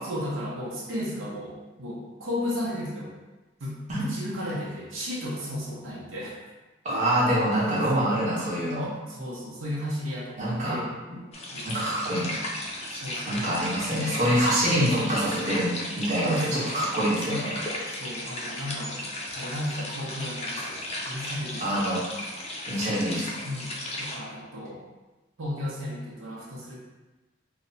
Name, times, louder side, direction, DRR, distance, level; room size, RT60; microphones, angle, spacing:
voice 1, 0.0-3.1 3.6-6.4 6.9-7.0 7.6-8.1 9.1-12.1 12.9-13.5 16.2-16.7 17.9-19.1 19.3-21.8 23.4-24.8 25.4-26.8, left 1 dB, 80° right, -5 dB, 0.7 m, -34 dB
voice 2, 6.8-9.0 10.4-10.8 11.6-12.5 13.2-17.6 21.6-22.0 22.7-23.4, equal, 35° right, -7 dB, 0.9 m, -26 dB
sound 1, 11.3-24.2, left 1 dB, 30° left, 0.5 m, -35 dB
2.9 x 2.1 x 3.8 m, 1.2 s
head